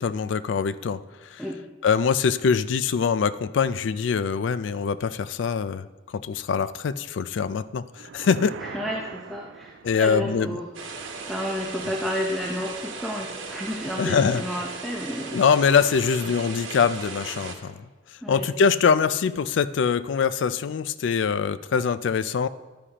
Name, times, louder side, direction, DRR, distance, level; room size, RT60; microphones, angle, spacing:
voice 1, 0.0-1.4 1.8-8.5 9.8-10.6 14.0-14.4 15.3-17.9 18.3-22.5, left 6 dB, 75° left, 15 dB, 0.3 m, -23 dB
sound 1, 7.9-10.3, right 6 dB, 70° right, 0.4 m, -41 dB
voice 2, 8.6-10.7 11.3-15.4 18.2-18.5, equal, ahead, -1 dB, 0.6 m, -31 dB
sound 2, 10.7-17.5, right 4 dB, 90° right, 1.2 m, -37 dB
11.0 x 9.8 x 2.9 m, 1.3 s
head